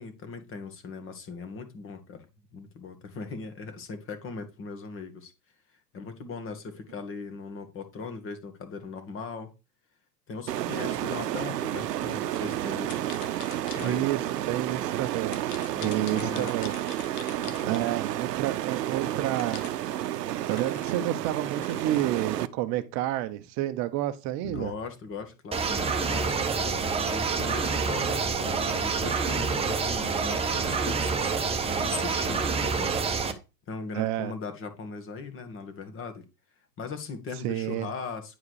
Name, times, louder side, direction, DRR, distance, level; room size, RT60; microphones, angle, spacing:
voice 1, 0.0-2.3 2.5-5.3 5.9-9.5 10.3-13.1 13.7-14.1 15.7-16.5 17.4-17.9 24.4-31.3 31.8-32.9 33.7-36.2 36.8-38.4, left 4 dB, 25° left, 2.1 m, -39 dB
sound 1, 10.5-22.5, right 12 dB, 75° right, 0.8 m, -31 dB
sound 2, 12.9-14.2 15.3-18.3 19.4-22.0, left 9 dB, 65° left, 1.6 m, -45 dB
voice 2, 13.8-14.2 14.4-15.4 15.8-16.8 17.4-19.7 20.3-24.7 33.9-34.3 37.4-37.9, right 14 dB, 35° right, 0.9 m, -30 dB
sound 3, 25.5-33.3, right 5 dB, 10° right, 1.2 m, -27 dB
10.0 x 4.7 x 4.8 m
hypercardioid pair, 120°, 48 cm